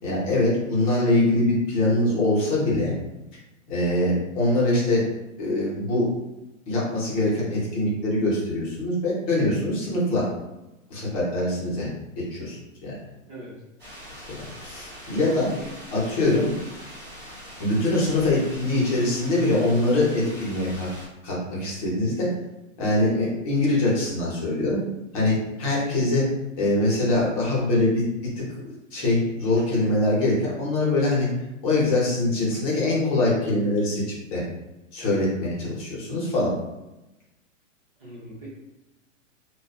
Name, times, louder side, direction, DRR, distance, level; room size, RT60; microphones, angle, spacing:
voice 1, 0.0-3.0 3.7-5.0 5.4-6.1 6.7-10.3 10.9-11.9 12.2-13.0 14.3-15.5 15.9-16.5 17.6-20.9 21.2-22.3 22.8-24.8 25.1-26.3 26.6-28.0 28.4-28.5 28.9-31.3 31.6-34.4 34.9-36.5, left 2 dB, 30° left, -6 dB, 0.7 m, -23 dB
voice 2, 13.3-13.6 15.6-15.7 38.0-38.5, right 1 dB, 30° right, -8 dB, 0.4 m, -42 dB
sound 1, 13.8-21.1, equal, 10° right, 0.9 m, -42 dB
2.6 x 2.2 x 2.3 m, 0.99 s
hypercardioid pair, 155°, 40 cm